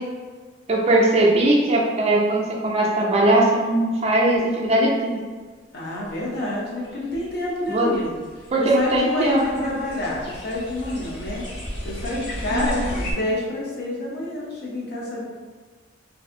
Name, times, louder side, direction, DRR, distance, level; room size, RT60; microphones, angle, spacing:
voice 1, 0.7-5.2 7.7-7.9 8.5-9.7 12.5-12.9, right 1 dB, 30° right, -3 dB, 0.4 m, -20 dB
voice 2, 5.7-11.4 11.8-15.3, left 1 dB, 55° left, -4 dB, 0.6 m, -28 dB
sound 1, 6.1-6.2 6.8-13.1, equal, 70° left, 1.1 m, -35 dB
2.6 x 2.5 x 2.5 m, 1.4 s
head